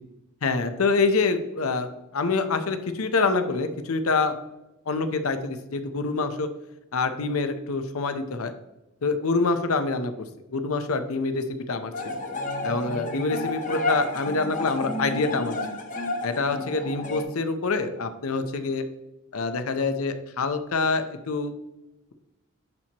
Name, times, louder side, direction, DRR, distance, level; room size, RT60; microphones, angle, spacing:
voice 1, 0.4-4.4 4.9-6.5 6.9-8.5 9.0-10.2 10.5-12.2 12.6-15.6 16.2-18.8 19.3-21.5, left 3 dB, 85° left, 9 dB, 0.7 m, -26 dB
sound 1, 11.9-17.2, left 2 dB, 40° left, 1.0 m, -31 dB
10.5 x 4.4 x 2.9 m, 0.98 s
head